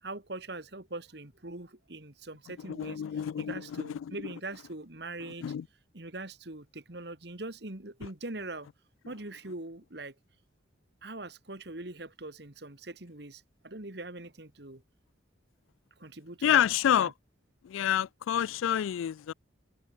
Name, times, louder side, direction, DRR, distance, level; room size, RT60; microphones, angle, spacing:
voice 1, 0.0-3.0 3.4-5.4 5.9-8.7 9.1-10.1 11.0-14.8 16.0-16.6 17.0-17.1, right 2 dB, 55° right, 2.0 m, -42 dB
voice 2, 2.6-4.2 5.2-5.7 16.4-17.1 17.6-19.3, left 10 dB, 90° left, 0.3 m, -28 dB
head